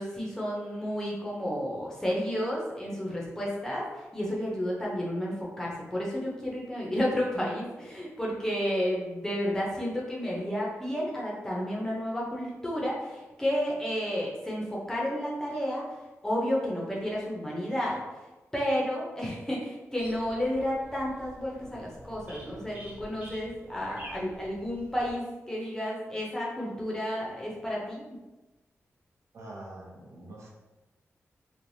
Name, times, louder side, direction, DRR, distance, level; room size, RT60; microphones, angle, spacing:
voice 1, 0.0-15.8 16.2-18.0 18.5-28.1, equal, 10° left, -5 dB, 0.5 m, -31 dB
sound 1, 20.0-25.1, right 1 dB, 35° right, 0.9 m, -48 dB
voice 2, 29.3-30.5, right 1 dB, 70° right, -3 dB, 0.7 m, -44 dB
3.1 x 2.1 x 2.6 m, 1.1 s
wide cardioid pair, 180°, 5 cm